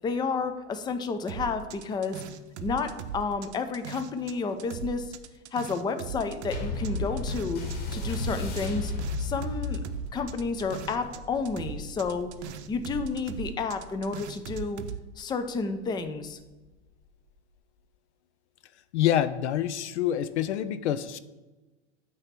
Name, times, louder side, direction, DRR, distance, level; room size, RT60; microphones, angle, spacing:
voice 1, 0.0-2.2 2.6-5.1 5.5-7.6 7.9-8.9 9.2-9.8 10.1-12.3 12.7-14.8 15.2-16.4, left 4 dB, 15° left, 8 dB, 0.5 m, -31 dB
sound 1, 1.3-4.3 4.6-11.2 11.4-15.0, right 9 dB, 75° right, 0.6 m, -39 dB
sound 2, 6.5-15.3 16.0-16.1, left 3 dB, 60° left, 1.8 m, -35 dB
voice 2, 18.9-21.2, left 11 dB, 75° left, 13 dB, 0.5 m, -26 dB
8.7 x 3.0 x 6.0 m, 1.1 s
hypercardioid pair, 100°, 34 cm